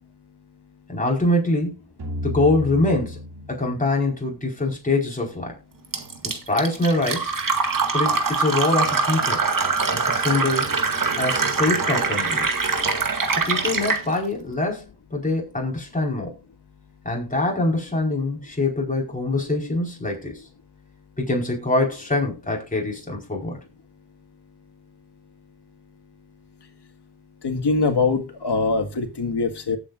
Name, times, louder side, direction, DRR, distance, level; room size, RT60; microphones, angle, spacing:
voice 1, 0.9-1.8 2.2-3.2 3.5-5.5 6.2-7.3 7.9-9.4 9.9-10.7 11.2-12.5 13.3-16.3 17.0-20.4 21.2-23.6, left 2 dB, 20° left, 4.9 m, -24 dB
sound 1, 2.0-4.9, left 1 dB, 70° right, 3.1 m, -34 dB
Fill (with liquid), 5.9-14.0, right 4 dB, 50° right, 2.0 m, -23 dB
voice 2, 27.4-29.8, left 4 dB, 80° left, 1.9 m, -23 dB
18.5 x 8.2 x 2.6 m
cardioid pair, 65°, 40 cm